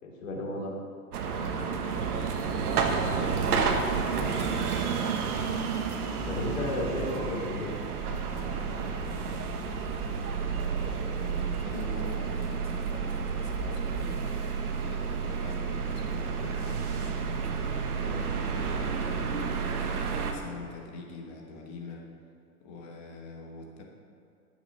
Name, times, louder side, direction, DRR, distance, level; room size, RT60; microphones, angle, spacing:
voice 1, 0.0-0.7 6.2-7.8, left 1 dB, 60° left, -3 dB, 3.2 m, -33 dB
sound 1, 1.1-20.3, right 5 dB, 70° right, 1.4 m, -30 dB
voice 2, 3.1-4.2 11.1-14.3 14.8-17.5 18.0-22.0 22.6-23.8, left 3 dB, 25° left, 0 dB, 1.2 m, -43 dB
Waves surf, 3.5-20.9, right 2 dB, 55° right, 2.3 m, -52 dB
13.0 x 7.2 x 5.4 m, 2.4 s
hypercardioid pair, 165°, 46 cm